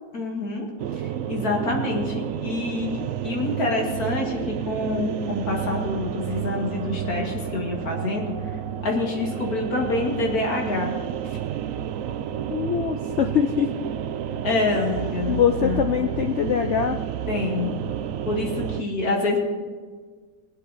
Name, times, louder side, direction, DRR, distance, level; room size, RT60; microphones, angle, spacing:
voice 1, 0.1-0.7 0.9-8.3 8.8-10.9 14.4-15.8 17.3-17.7 18.3-19.4, left 2 dB, 55° left, 0 dB, 2.4 m, -26 dB
sound 1, 0.8-18.8, right 10 dB, 75° right, 0.7 m, -30 dB
voice 2, 12.5-13.7 15.3-17.0, left 8 dB, 90° left, 6 dB, 0.6 m, -23 dB
21.0 x 8.3 x 4.1 m, 1.5 s
omnidirectional pair, 1.9 m